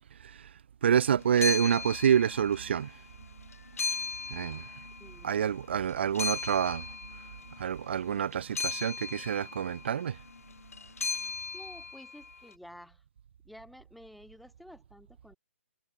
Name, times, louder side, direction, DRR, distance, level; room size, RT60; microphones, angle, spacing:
voice 1, 0.8-3.0 4.3-4.7 5.2-6.9 7.6-10.2, right 8 dB, 50° right, 2.8 m, -27 dB
sound 1, 1.2-2.9 3.2-5.5 5.9-12.4, left 5 dB, 85° left, 3.4 m, -37 dB
voice 2, 5.0-5.4 11.5-13.0 13.4-15.4, left 1 dB, ahead, 2.5 m, -51 dB
hypercardioid pair, 165°, 8 cm